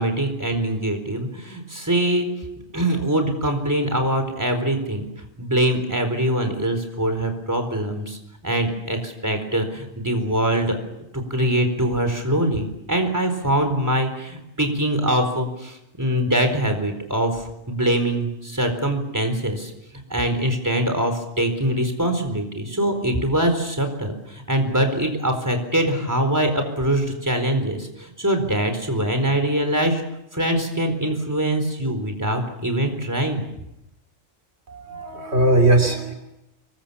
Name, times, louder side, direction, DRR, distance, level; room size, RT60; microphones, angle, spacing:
voice 1, 0.0-2.3 2.7-5.1 5.4-10.8 11.1-19.7 20.1-30.0 30.3-33.4, right 1 dB, 15° right, 7 dB, 4.4 m, -23 dB
voice 2, 34.7-36.1, right 2 dB, 55° right, 4 dB, 3.5 m, -19 dB
26.0 x 23.0 x 7.1 m, 0.87 s
omnidirectional pair, 1.4 m